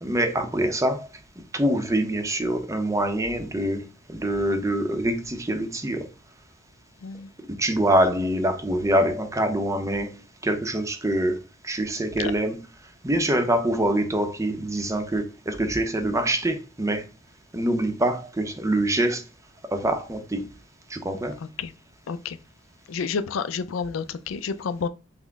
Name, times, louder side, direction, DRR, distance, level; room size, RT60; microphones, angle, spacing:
voice 1, 0.0-1.1 1.5-6.1 7.6-12.6 13.0-17.1 17.5-19.2 19.7-20.5 20.9-21.4, right 1 dB, 15° right, 0.6 m, -25 dB
voice 2, 22.1-22.4 22.9-24.9, left 5 dB, 80° left, 0.4 m, -29 dB
5.8 x 2.1 x 3.5 m
head